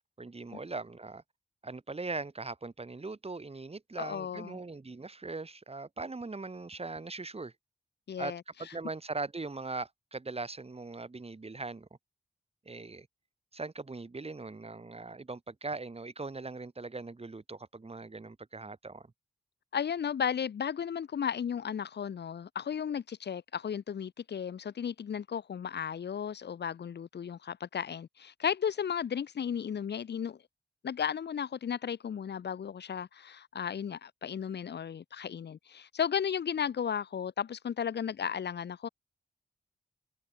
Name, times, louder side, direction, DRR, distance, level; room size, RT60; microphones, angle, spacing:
voice 1, 0.2-1.2 1.6-7.5 8.2-8.3 8.6-11.9 12.6-13.1 13.5-19.1, right 3 dB, 35° right, 3.3 m, -40 dB
voice 2, 4.0-4.6 8.1-8.4 19.7-30.4 30.8-38.9, left 8 dB, 85° left, 1.3 m, -34 dB
cardioid pair, 70°, 17 cm